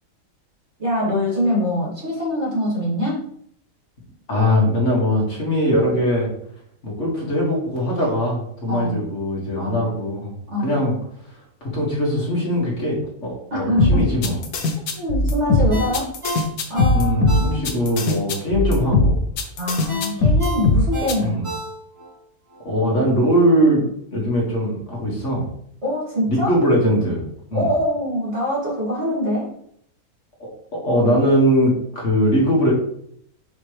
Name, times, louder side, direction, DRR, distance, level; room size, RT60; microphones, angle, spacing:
voice 1, 0.8-3.2 8.7-9.0 9.6-9.8 10.5-10.8 13.5-14.1 14.9-16.1 16.7-17.7 19.6-21.4 25.8-26.5 27.5-29.5, equal, 50° right, -6 dB, 2.8 m, -24 dB
voice 2, 4.3-6.3 6.8-10.3 10.6-10.9 11.6-14.4 16.9-19.2 21.2-21.4 22.6-23.8 24.1-25.5 26.3-27.2 27.5-27.7 30.7-32.7, equal, 55° left, -3 dB, 2.5 m, -20 dB
sound 1, 13.8-21.1, left 2 dB, 85° left, 1.4 m, -19 dB
Ringtone, 15.7-18.0 18.3-18.4 19.9-22.1 22.5-22.6, right 1 dB, 20° right, 2.1 m, -31 dB
7.0 x 5.2 x 3.3 m, 0.68 s
omnidirectional pair, 1.5 m